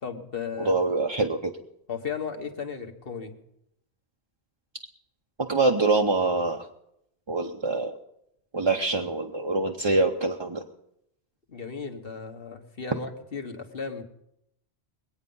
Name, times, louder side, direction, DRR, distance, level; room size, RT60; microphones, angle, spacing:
voice 1, 0.0-0.8 1.9-3.4 11.5-14.0, left 6 dB, 55° left, 4 dB, 1.5 m, -35 dB
voice 2, 0.6-1.5 5.5-6.7 7.3-8.0 8.5-10.6, right 3 dB, 30° right, 1 dB, 0.7 m, -25 dB
21.5 x 9.0 x 5.5 m, 0.79 s
omnidirectional pair, 1.1 m